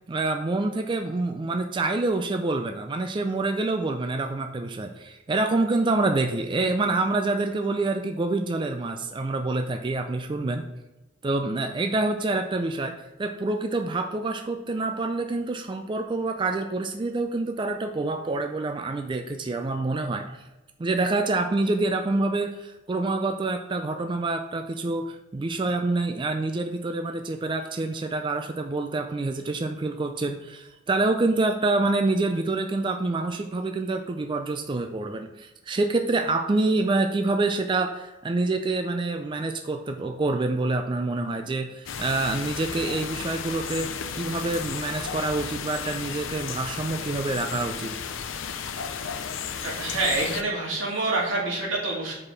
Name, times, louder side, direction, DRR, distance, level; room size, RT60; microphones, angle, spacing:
voice 1, 0.1-10.7 11.2-20.4 20.8-47.9, right 2 dB, 25° right, 5 dB, 0.4 m, -27 dB
sound 1, 41.9-50.4, left 7 dB, 85° left, 0.5 m, -34 dB
voice 2, 49.6-52.1, right 2 dB, 90° right, -4 dB, 2.3 m, -27 dB
4.8 x 4.8 x 5.7 m, 1.0 s
head